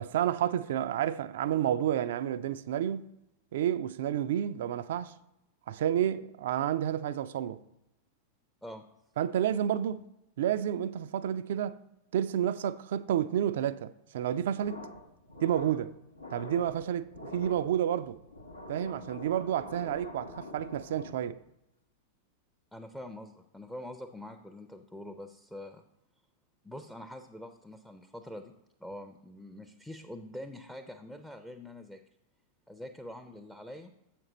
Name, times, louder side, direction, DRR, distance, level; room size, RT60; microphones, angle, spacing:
voice 1, 0.0-3.1 3.5-5.1 5.7-7.6 9.2-10.1 10.4-11.8 12.1-14.9 15.4-15.9 16.3-18.2 18.7-21.4, right 10 dB, 55° right, 0.3 m, -30 dB
sound 1, 14.6-21.4, left 1 dB, 85° left, 0.7 m, -46 dB
voice 2, 22.7-25.8 26.6-28.5 28.8-32.0 32.7-33.9, left 1 dB, 5° left, 0.5 m, -45 dB
7.6 x 6.0 x 4.0 m
figure-of-eight pair, 90°, 0 cm